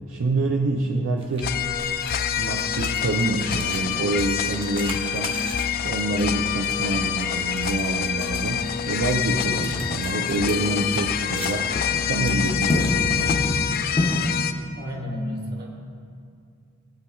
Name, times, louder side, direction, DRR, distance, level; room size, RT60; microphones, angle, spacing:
voice 1, 0.0-1.5 2.4-5.4 5.8-13.4, right 2 dB, 70° right, 1 dB, 0.5 m, -26 dB
sound 1, 1.2-13.6, right 2 dB, 25° right, 1.0 m, -43 dB
sound 2, 1.4-14.5, left 8 dB, 45° left, 0.3 m, -26 dB
sound 3, 4.4-4.6 7.8-7.9 9.6-11.2 11.5-12.2 12.5-14.5, left 1 dB, 20° left, 0.9 m, -28 dB
voice 2, 14.7-15.7, left 1 dB, 50° right, -1 dB, 1.5 m, -31 dB
16.0 x 8.3 x 2.4 m, 2.4 s
head